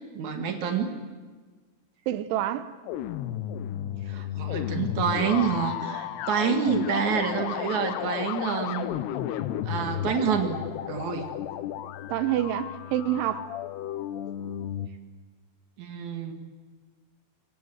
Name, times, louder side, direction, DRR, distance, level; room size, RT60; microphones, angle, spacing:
voice 1, 0.1-1.0 4.1-8.8 9.7-10.6 10.9-11.3 15.8-16.3, right 7 dB, 50° right, 2.7 m, -27 dB
voice 2, 2.1-2.7 12.1-13.5, right 12 dB, 80° right, 3.3 m, -27 dB
sound 1, 2.8-14.9, left 11 dB, 75° left, 2.8 m, -33 dB
25.5 x 23.5 x 7.9 m
omnidirectional pair, 5.4 m